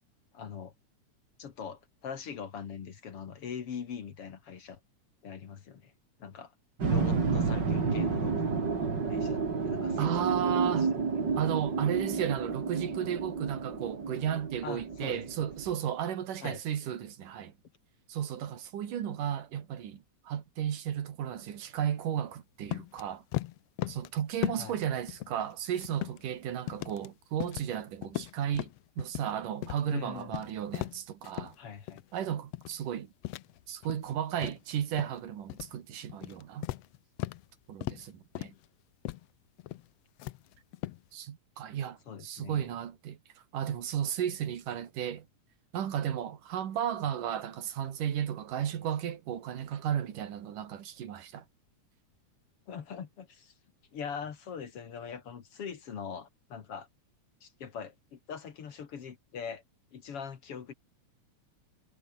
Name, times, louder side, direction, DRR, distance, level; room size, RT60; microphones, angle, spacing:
voice 1, 0.3-0.7 1.4-4.8 5.2-5.9 6.2-6.5 6.9-8.5 8.7-10.5 10.8-10.9 14.6-15.5 16.4-16.6 24.6-24.8 29.9-30.4 31.6-32.0 42.1-42.7 52.7-53.5 53.9-56.9 57.4-59.6 59.9-60.7, left 7 dB, 50° left, 2.6 m, -42 dB
sound 1, 6.8-15.7, right 4 dB, 35° right, 3.3 m, -31 dB
voice 2, 10.0-11.0 11.4-17.5 18.1-23.2 23.9-28.7 29.0-31.6 32.1-33.1 33.7-36.7 37.7-38.5 41.1-43.2 43.5-45.3 45.7-51.4, right 9 dB, 85° right, 3.6 m, -34 dB
sound 2, 22.7-23.0 23.3-24.1 24.4-24.8 25.1-26.3 26.7-27.1 27.4-27.8 28.0-29.3 29.6-29.8 30.2-31.6 31.9-32.2 32.5-32.9 33.2-34.1 34.4-35.2 35.5-35.8 36.1-37.5 37.8-38.1 38.4-38.6 39.1-39.3 39.6-39.9 40.2-41.0, left 16 dB, 80° left, 1.4 m, -37 dB
omnidirectional pair, 3.6 m